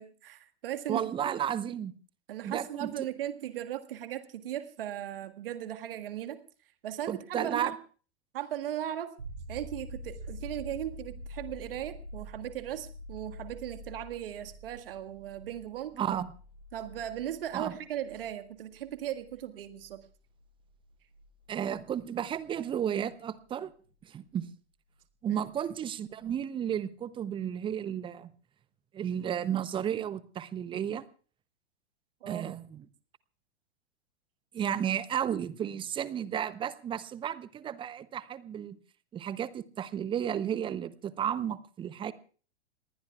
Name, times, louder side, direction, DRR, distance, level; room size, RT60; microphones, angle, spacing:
voice 1, 0.0-1.0 2.3-6.4 6.8-7.8 8.3-9.1 9.5-16.0 16.7-20.0 25.3-25.4 32.2-32.4, right 11 dB, 55° right, 8 dB, 1.8 m, -37 dB
voice 2, 0.9-1.9 2.4-3.1 7.1-7.7 16.0-16.3 17.5-17.8 21.5-23.7 24.0-24.5 25.2-28.3 28.9-31.0 32.3-32.8 34.5-38.8 39.1-42.1, right 9 dB, 15° right, 17 dB, 0.7 m, -33 dB
sound 1, 9.2-22.7 25.4-25.5, equal, 75° right, 4.1 m, -47 dB
28.0 x 19.5 x 2.4 m, 0.39 s
figure-of-eight pair, 100°, 34 cm